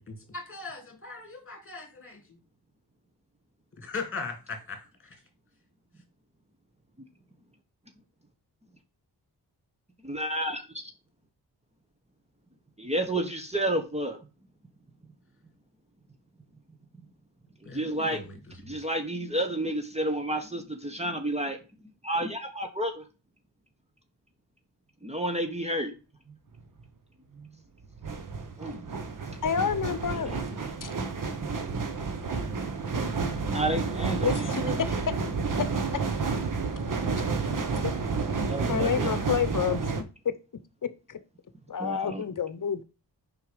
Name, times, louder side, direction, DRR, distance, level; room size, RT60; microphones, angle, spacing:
voice 1, 0.0-2.2 3.8-4.3 4.7-4.8 17.7-18.4 18.6-18.7, left 4 dB, 30° left, 4 dB, 2.7 m, -39 dB
voice 2, 10.0-10.6 12.8-14.2 17.7-18.2 18.6-21.6 22.0-23.0 25.0-25.9 27.4-27.5 28.6-28.9 30.2-30.4 33.5-34.8 38.5-39.1 41.8-42.2, right 1 dB, 15° right, 5 dB, 1.3 m, -31 dB
sound 1, 26.6-26.8 27.8-40.0, right 4 dB, 50° right, 1.2 m, -30 dB
voice 3, 29.4-30.4 30.8-30.9 34.2-34.6 37.6-37.9 38.7-39.8 40.2-40.3 41.1-41.2 41.7-42.8, left 7 dB, 50° left, 13 dB, 1.0 m, -29 dB
6.7 x 5.5 x 5.1 m, 0.31 s
wide cardioid pair, 90°, 41 cm